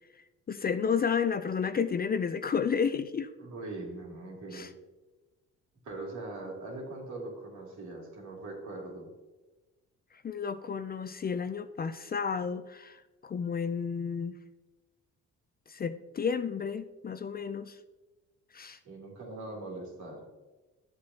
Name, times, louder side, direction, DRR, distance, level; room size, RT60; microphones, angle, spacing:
voice 1, 0.5-3.3 4.5-4.7 10.2-13.0 13.2-14.4 15.7-17.8 18.5-18.8, left 6 dB, 30° left, 11 dB, 0.5 m, -31 dB
voice 2, 3.4-4.7 5.8-9.1 18.8-20.2, right 2 dB, 70° right, -2 dB, 3.0 m, -41 dB
12.0 x 7.6 x 2.8 m, 1.2 s
cardioid pair, 90°, 30 cm